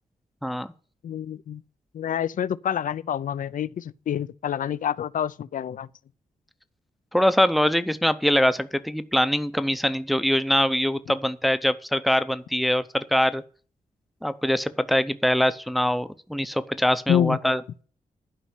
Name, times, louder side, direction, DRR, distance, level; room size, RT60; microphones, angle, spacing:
voice 1, 0.4-0.7 7.1-13.4 14.2-17.6, equal, ahead, 0.6 m, -23 dB
voice 2, 1.0-1.6 1.9-5.9 17.1-17.4, left 9 dB, 70° left, 0.5 m, -27 dB
11.5 x 5.5 x 7.7 m
wide cardioid pair, 165°, 14 cm